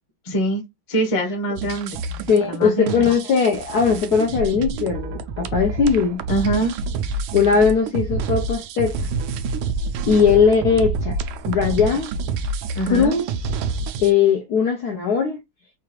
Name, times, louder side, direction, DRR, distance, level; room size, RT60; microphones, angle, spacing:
voice 1, 0.2-0.6 0.9-2.0 2.4-3.0 6.3-6.8 12.7-13.1, right 2 dB, 25° left, 0.7 m, -23 dB
sound 1, 1.6-14.1, right 4 dB, 85° right, 1.4 m, -28 dB
voice 2, 2.3-6.2 7.3-9.1 10.1-11.2 11.5-12.1 12.9-13.3 14.0-15.4, left 6 dB, 75° left, 0.9 m, -19 dB
4.7 x 2.4 x 3.0 m
omnidirectional pair, 2.2 m